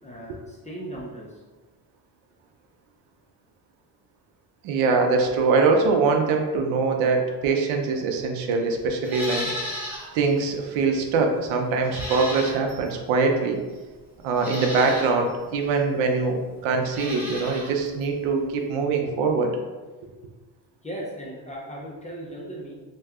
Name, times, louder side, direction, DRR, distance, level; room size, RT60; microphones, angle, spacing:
voice 1, 0.0-1.4 14.2-14.3 20.8-22.7, right 1 dB, 15° left, -4 dB, 0.4 m, -37 dB
voice 2, 4.6-9.8 10.1-13.6 14.2-19.6, right 4 dB, 90° right, 3 dB, 0.6 m, -23 dB
Livestock farm animals working animals, 9.0-10.1 10.5-10.6 11.8-12.9 13.7-13.8 14.3-15.1 16.8-17.7 18.0-18.1, left 1 dB, 5° right, 0.8 m, -34 dB
2.7 x 2.2 x 3.5 m, 1.3 s
cardioid pair, 125°, 46 cm